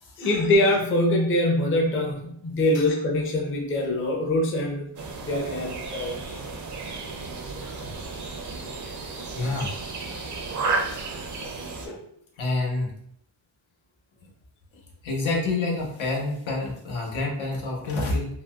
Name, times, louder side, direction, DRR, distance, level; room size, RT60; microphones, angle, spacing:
voice 1, 0.2-4.9 5.2-6.4 7.6-7.7 9.4-9.5 11.4-11.5 11.9-12.0, left 1 dB, 30° left, 0 dB, 0.5 m, -24 dB
sound 1, 5.0-11.9, right 3 dB, 40° right, 0.5 m, -33 dB
voice 2, 9.3-9.7 11.1-11.2 11.6-11.7 12.4-12.9 15.0-18.3, left 2 dB, 85° left, -1 dB, 1.0 m, -27 dB
3.7 x 2.2 x 2.2 m, 0.69 s
wide cardioid pair, 140°, 45 cm